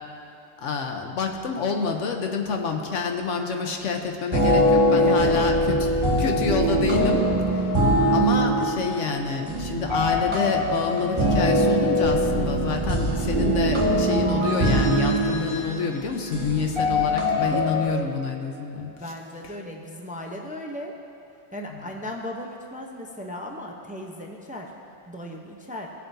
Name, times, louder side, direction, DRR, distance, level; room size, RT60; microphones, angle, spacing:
voice 1, 0.6-5.8 6.2-7.7 8.1-18.9, left 5 dB, 85° left, 4 dB, 1.2 m, -28 dB
sound 1, 4.3-17.9, equal, 25° right, 1.4 m, -22 dB
voice 2, 4.9-5.5 12.7-13.1 17.5-18.0 19.0-20.9 21.5-24.7 25.1-25.9, left 1 dB, 10° right, 1 dB, 0.6 m, -36 dB
18.5 x 7.5 x 2.7 m, 2.8 s
omnidirectional pair, 1.2 m